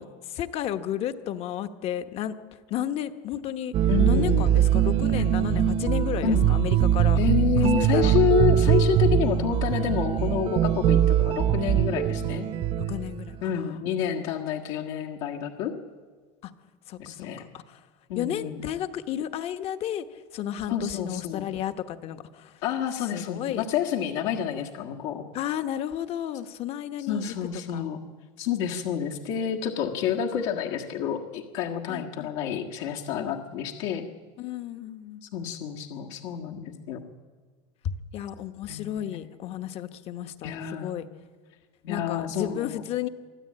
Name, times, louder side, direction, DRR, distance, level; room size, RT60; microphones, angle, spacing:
voice 1, 0.0-2.3 2.7-3.7 4.0-7.2 7.6-8.2 12.8-13.8 16.4-16.5 16.9-17.8 18.2-22.6 23.1-23.6 25.3-27.2 27.7-27.8 31.9-32.3 34.4-35.2 37.8-41.1 41.9-43.1, left 11 dB, 40° left, 10 dB, 1.0 m, -33 dB
sound 1, 3.7-13.3, right 10 dB, 40° right, 0.9 m, -22 dB
voice 2, 3.9-4.5 6.2-6.5 7.2-12.5 13.4-15.7 17.0-17.4 18.1-18.6 20.7-21.5 22.6-25.2 27.1-28.0 28.4-34.1 35.2-37.0 38.7-39.1 40.4-40.9 41.8-42.8, left 8 dB, 75° left, 0 dB, 1.7 m, -29 dB
24.0 x 13.0 x 8.7 m, 1.5 s
cardioid pair, 155°, 15 cm